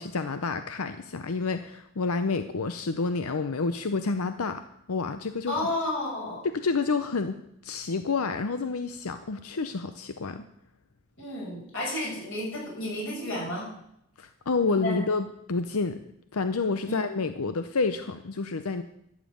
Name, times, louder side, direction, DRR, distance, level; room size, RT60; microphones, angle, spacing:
voice 1, 0.0-5.5 6.4-10.5 14.2-16.0 16.3-18.8, left 4 dB, 90° left, 10 dB, 0.7 m, -29 dB
voice 2, 5.5-6.4 11.2-13.7 14.6-15.0 16.8-17.0, left 1 dB, 60° left, -4 dB, 7.2 m, -32 dB
12.5 x 7.4 x 8.5 m, 0.76 s
head